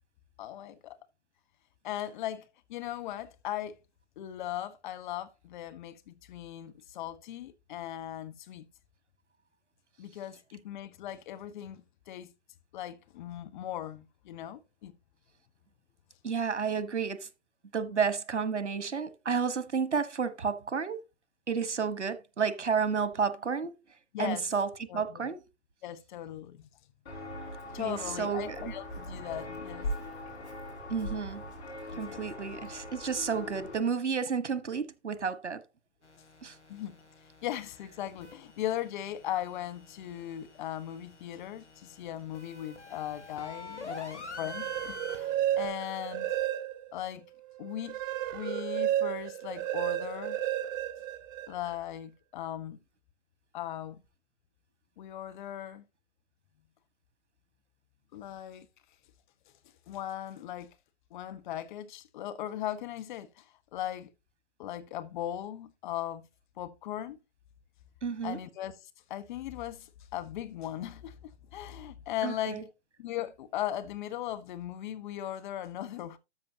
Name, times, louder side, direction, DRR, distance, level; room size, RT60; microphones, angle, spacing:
voice 1, 0.4-1.0 1.8-3.8 4.2-8.7 10.0-12.3 12.7-15.0 24.1-24.5 24.9-25.2 25.8-26.7 27.7-29.9 31.9-32.2 36.7-37.0 37.4-46.3 46.9-47.3 47.6-48.0 48.3-50.4 51.5-52.8 53.5-54.0 55.0-55.8 58.1-58.7 59.9-60.7 61.1-64.1 64.6-66.3 66.6-67.2 68.2-68.7 69.1-71.2 71.5-72.6 73.0-76.2, left 12 dB, 45° left, 1.3 m, -38 dB
voice 2, 16.2-17.3 17.7-21.0 21.5-23.8 24.2-25.4 27.8-28.7 30.9-31.4 32.0-35.6 36.4-36.6 68.0-68.4 72.2-72.6, right 6 dB, 85° right, 1.3 m, -31 dB
Walk footsteps, 27.1-33.8, left 1 dB, 65° left, 5.8 m, -40 dB
sound 1, 36.0-45.7, left 3 dB, 85° left, 3.0 m, -48 dB
sound 2, 44.3-47.0 47.4-51.7, right 12 dB, 20° right, 0.4 m, -32 dB
13.0 x 6.2 x 2.8 m
figure-of-eight pair, 125°, 34 cm